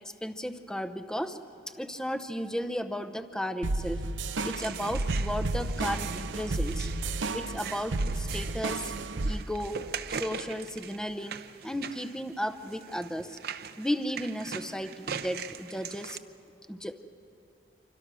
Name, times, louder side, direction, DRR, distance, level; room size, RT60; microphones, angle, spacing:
voice 1, 0.0-1.4 1.7-4.0 4.4-6.9 7.3-8.9 9.2-9.8 10.1-13.4 13.8-16.2 16.7-17.1, equal, 5° left, 9 dB, 0.7 m, -34 dB
sound 1, 3.6-9.3, right 2 dB, 90° right, 0.8 m, -32 dB
sound 2, 4.4-16.2, right 7 dB, 55° right, 0.7 m, -41 dB
27.0 x 25.0 x 6.2 m, 2.5 s
head